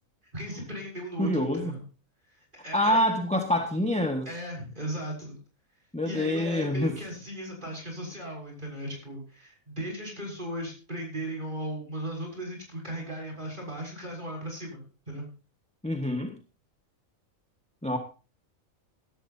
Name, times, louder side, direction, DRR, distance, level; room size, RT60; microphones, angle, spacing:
voice 1, 0.3-1.8 2.3-3.0 4.2-5.4 6.0-15.3, right 1 dB, 35° right, 6.8 m, -37 dB
voice 2, 1.2-1.7 2.7-4.3 5.9-6.9 15.8-16.3 17.8-18.0, left 1 dB, 5° left, 1.5 m, -26 dB
18.0 x 13.0 x 2.8 m
omnidirectional pair, 1.4 m